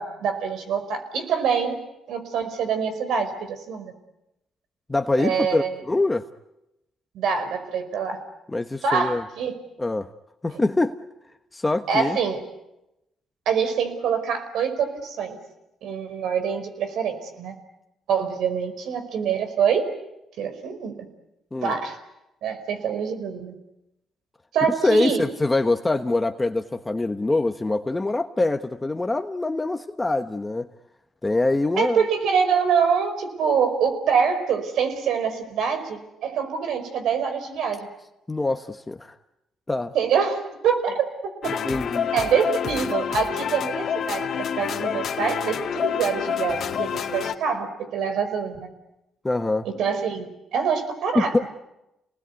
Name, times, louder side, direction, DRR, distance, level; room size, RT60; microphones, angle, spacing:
voice 1, 0.0-1.8 2.1-3.9 5.2-5.7 7.1-8.2 8.8-9.5 10.5-10.6 11.9-12.4 13.4-15.4 15.8-17.5 18.1-19.9 20.4-21.0 21.6-21.9 22.4-23.5 24.5-25.2 31.8-37.9 39.9-41.1 41.4-41.6 42.1-48.7 49.6-50.3 50.5-51.5, right 6 dB, 80° right, 8 dB, 5.0 m, -25 dB
voice 2, 4.9-6.2 8.5-9.2 9.8-10.1 10.4-10.9 11.5-12.2 21.5-21.7 24.8-30.7 31.2-32.1 38.3-39.1 39.7-39.9 41.6-42.1 49.2-49.7 51.1-51.4, left 2 dB, 15° left, 8 dB, 1.1 m, -24 dB
sound 1, 41.4-47.3, left 8 dB, 60° left, 2.1 m, -28 dB
29.5 x 19.5 x 9.5 m, 0.91 s
cardioid pair, 90°, 0 cm